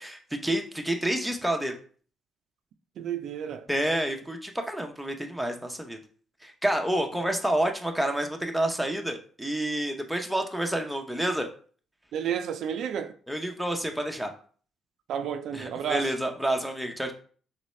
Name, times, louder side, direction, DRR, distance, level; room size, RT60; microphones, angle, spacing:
voice 1, 0.0-1.8 3.7-6.0 6.4-11.5 13.3-14.3 15.5-17.1, right 1 dB, ahead, 0.7 m, -29 dB
voice 2, 3.0-3.7 12.1-13.1 15.1-16.1, right 8 dB, 75° right, 0.4 m, -31 dB
4.1 x 3.1 x 3.2 m
cardioid pair, 90°, 0 cm